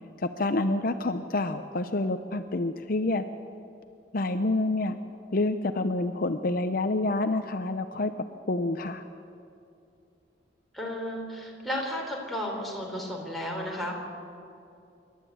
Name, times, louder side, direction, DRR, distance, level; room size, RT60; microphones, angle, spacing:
voice 1, 0.2-3.2 4.1-5.0 5.3-8.1 8.5-9.0, left 2 dB, 50° left, 9 dB, 0.7 m, -28 dB
voice 2, 10.7-13.9, equal, ahead, -2 dB, 4.2 m, -33 dB
27.0 x 12.0 x 8.7 m, 2.6 s
head